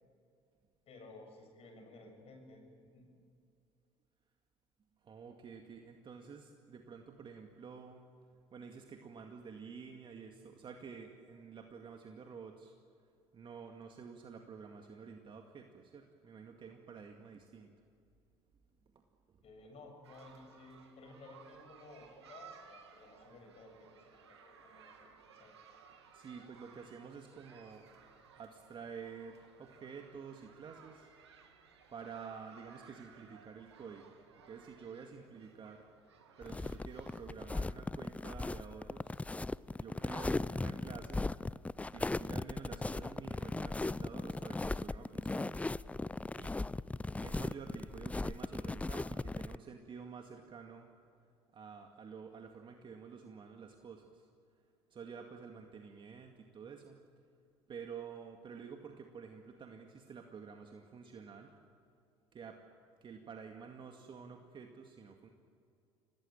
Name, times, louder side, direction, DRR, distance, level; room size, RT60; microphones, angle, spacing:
voice 1, 0.9-2.6 2.9-3.0 19.4-25.5, left 2 dB, 45° left, 3 dB, 7.7 m, -55 dB
voice 2, 5.0-8.0 8.5-12.8 13.3-17.7 19.3-19.4 26.1-27.9 28.3-31.1 31.9-34.2 34.5-35.8 36.4-39.2 39.8-41.3 41.9-45.6 46.4-46.6 47.2-50.9 51.5-54.3 54.9-57.0 57.7-61.5 62.3-62.6 63.0-65.3, right 6 dB, 35° right, 3 dB, 2.1 m, -50 dB
sound 1, 20.0-37.2, right 6 dB, 85° right, 2.4 m, -60 dB
sound 2, 36.4-49.6, left 2 dB, 10° left, 0.5 m, -38 dB
26.5 x 18.5 x 9.0 m, 2.4 s
hypercardioid pair, 65°, 14 cm